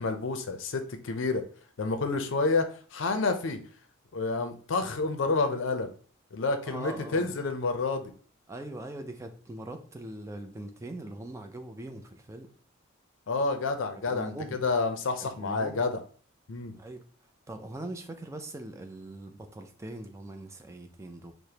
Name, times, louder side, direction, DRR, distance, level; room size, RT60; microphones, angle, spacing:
voice 1, 0.0-1.4 1.8-3.6 4.1-5.9 6.3-8.1 13.3-16.0 16.5-16.8, left 3 dB, 60° left, 7 dB, 0.5 m, -29 dB
voice 2, 6.7-7.4 8.5-12.5 14.1-14.6 15.4-15.8 16.7-17.0 17.5-21.3, right 1 dB, 15° right, 6 dB, 0.3 m, -41 dB
4.8 x 2.1 x 2.8 m, 0.42 s
head